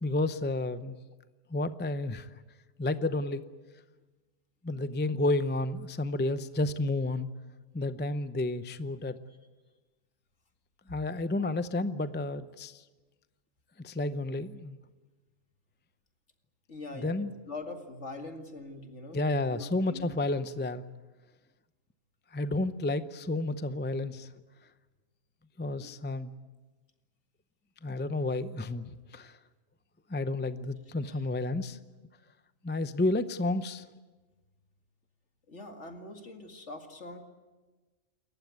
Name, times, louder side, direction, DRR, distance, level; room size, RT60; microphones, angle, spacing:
voice 1, 0.0-0.9 1.5-2.3 2.8-3.4 4.6-7.3 7.7-9.2 10.9-12.8 13.8-14.8 16.9-17.3 19.1-20.8 22.3-24.3 25.6-26.3 27.8-29.4 30.1-31.8 32.6-33.9, left 2 dB, 15° left, 12 dB, 0.5 m, -31 dB
voice 2, 16.7-20.1 25.8-25.9 31.0-31.3 35.5-37.2, left 2 dB, 60° left, 5 dB, 2.5 m, -43 dB
28.0 x 15.0 x 9.5 m, 1.3 s
omnidirectional pair, 1.3 m